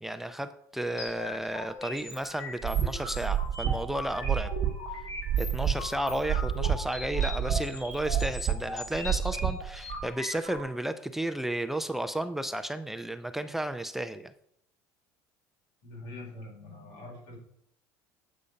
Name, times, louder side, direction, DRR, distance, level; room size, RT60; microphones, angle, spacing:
voice 1, 0.0-4.5 5.4-14.3, right 1 dB, 5° right, 9 dB, 0.4 m, -33 dB
sound 1, 1.0-10.6, left 2 dB, 45° left, 2.8 m, -40 dB
sound 2, 2.6-10.0, right 10 dB, 40° right, 1.3 m, -29 dB
voice 2, 15.8-17.4, left 2 dB, 65° left, 0 dB, 4.5 m, -44 dB
8.5 x 6.6 x 5.2 m, 0.71 s
cardioid pair, 145°, 7 cm